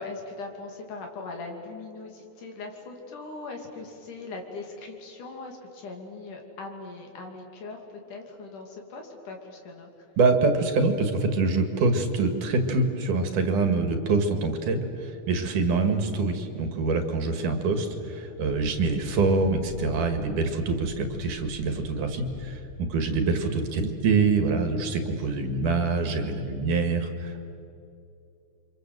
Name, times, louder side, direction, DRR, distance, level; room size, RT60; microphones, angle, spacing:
voice 1, 0.0-10.1 23.0-23.1, left 3 dB, 85° left, 2 dB, 4.4 m, -40 dB
voice 2, 10.2-27.4, right 3 dB, 85° right, 6 dB, 3.6 m, -25 dB
sound 1, 18.5-23.6, left 4 dB, 45° left, 0.9 m, -43 dB
28.5 x 25.5 x 7.9 m, 2.6 s
omnidirectional pair, 3.5 m